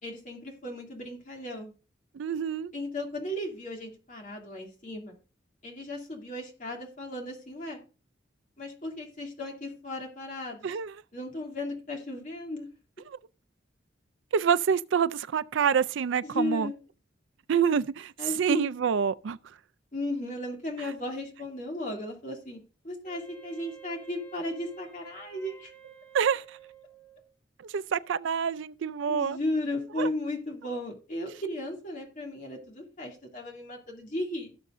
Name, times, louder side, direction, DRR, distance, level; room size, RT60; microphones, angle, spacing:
voice 1, 0.0-1.7 2.7-5.2 5.6-7.8 8.6-10.8 11.1-12.7 16.2-16.7 18.2-18.7 19.9-25.7 29.1-34.6, left 1 dB, 40° left, 2.5 m, -35 dB
voice 2, 2.1-2.7 10.6-10.9 14.3-16.7 17.5-19.4 26.1-26.6 27.6-29.4 30.0-30.1, right 7 dB, 75° right, 0.4 m, -27 dB
Wind instrument woodwind instrument, 23.0-27.3, right 8 dB, 10° left, 1.6 m, -51 dB
17.5 x 6.7 x 2.6 m
head